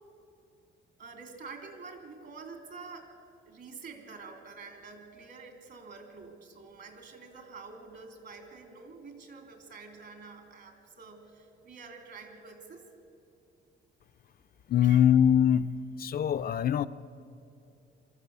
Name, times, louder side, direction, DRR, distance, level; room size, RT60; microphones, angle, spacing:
voice 1, 1.0-3.1 3.4-12.9 14.8-15.0, right 4 dB, 60° right, 5 dB, 3.1 m, -47 dB
voice 2, 14.7-15.7 16.0-16.9, left 9 dB, 50° left, 11 dB, 0.5 m, -23 dB
24.0 x 13.5 x 8.2 m, 2.7 s
cardioid pair, 90°, 20 cm